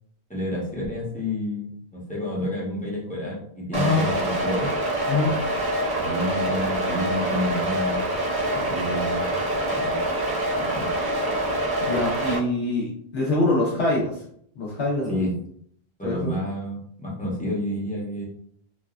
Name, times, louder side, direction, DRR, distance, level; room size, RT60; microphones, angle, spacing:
voice 1, 0.3-4.7 6.0-8.0 8.7-9.3 9.6-10.0 10.6-10.9 15.1-15.3 16.0-18.3, left 1 dB, 10° left, -6 dB, 0.7 m, -29 dB
sound 1, 3.7-12.4, right 1 dB, 30° right, 0.5 m, -25 dB
voice 2, 11.9-14.1 14.6-15.2 16.0-16.3, left 2 dB, 85° left, -5 dB, 1.0 m, -24 dB
3.3 x 2.1 x 2.3 m, 0.64 s
omnidirectional pair, 1.1 m